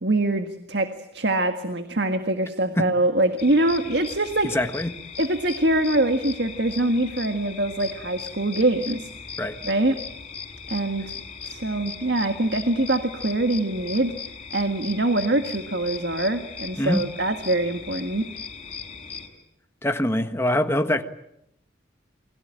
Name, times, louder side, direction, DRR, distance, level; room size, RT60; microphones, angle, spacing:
voice 1, 0.0-4.6 5.2-9.1 9.6-10.0 10.7-11.1 11.4-14.1 14.5-18.3, right 1 dB, 65° right, 1.8 m, -24 dB
sound 1, 3.4-19.3, left 6 dB, 30° left, 5.0 m, -38 dB
voice 2, 4.4-4.9 9.4-9.6 16.8-17.1 19.8-21.0, left 1 dB, 15° left, 1.4 m, -24 dB
29.0 x 22.0 x 8.9 m
head